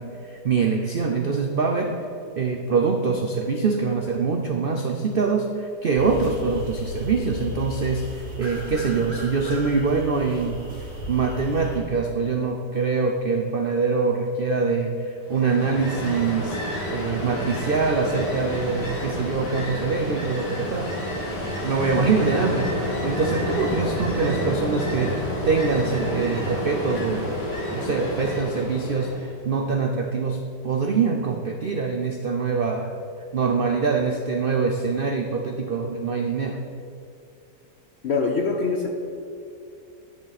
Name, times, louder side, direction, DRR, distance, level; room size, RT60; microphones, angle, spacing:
voice 1, 0.0-2.1 2.4-10.6 11.1-16.6 16.9-20.9 21.6-27.4 27.7-32.9 33.3-36.6, right 4 dB, 75° right, 3 dB, 0.5 m, -24 dB
sound 1, 6.0-11.8, left 3 dB, 40° right, 2.1 m, -35 dB
Ocean, 15.2-29.3, left 1 dB, 80° left, 2.9 m, -29 dB
voice 2, 38.0-38.9, left 4 dB, 60° left, 2 dB, 0.7 m, -23 dB
10.5 x 10.5 x 4.2 m, 2.6 s
omnidirectional pair, 1.8 m